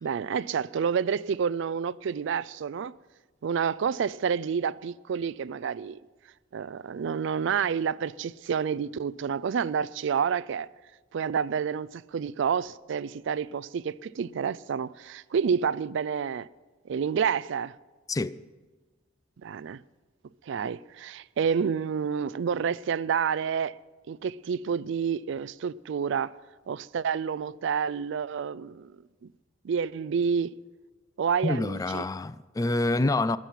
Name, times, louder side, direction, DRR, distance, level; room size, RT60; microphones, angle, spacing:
voice 1, 0.0-3.0 3.4-6.0 6.5-10.7 11.1-16.5 16.9-17.7 19.4-19.8 20.5-23.8 24.1-26.3 26.7-28.9 29.6-30.5 31.2-32.0, right 7 dB, 65° right, 0.4 m, -29 dB
voice 2, 31.4-33.4, left 2 dB, 20° left, 0.3 m, -27 dB
21.5 x 7.4 x 5.7 m
head